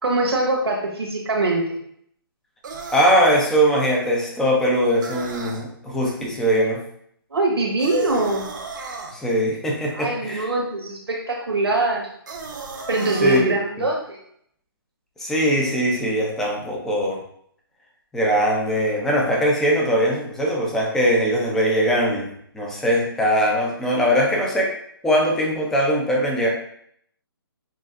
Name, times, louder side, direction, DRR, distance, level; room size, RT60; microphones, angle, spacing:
voice 1, 0.0-1.6 7.3-8.5 9.9-12.1 12.9-14.2, right 2 dB, 90° right, 0 dB, 1.4 m, -22 dB
sound 1, 2.6-3.3 5.0-5.6 7.8-9.1 12.3-13.4, right 4 dB, 50° right, 0.7 m, -34 dB
voice 2, 2.9-6.8 9.1-10.5 13.2-13.4 15.2-17.2 18.1-22.3 22.5-24.7 25.0-26.5, equal, 5° left, -2 dB, 0.5 m, -21 dB
6.2 x 2.4 x 2.5 m, 0.68 s
hypercardioid pair, 155°, 13 cm